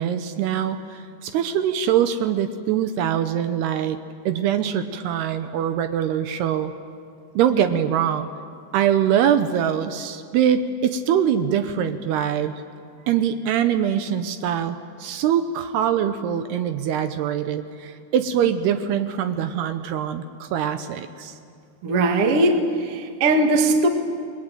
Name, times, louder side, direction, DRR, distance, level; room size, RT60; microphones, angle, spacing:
voice 1, 0.0-4.0 4.3-6.7 7.4-8.3 8.7-12.5 13.1-21.4, right 9 dB, 75° right, 9 dB, 2.8 m, -23 dB
voice 2, 21.8-23.9, right 2 dB, 45° right, 4 dB, 2.2 m, -19 dB
28.5 x 21.5 x 9.1 m, 2.3 s
omnidirectional pair, 4.9 m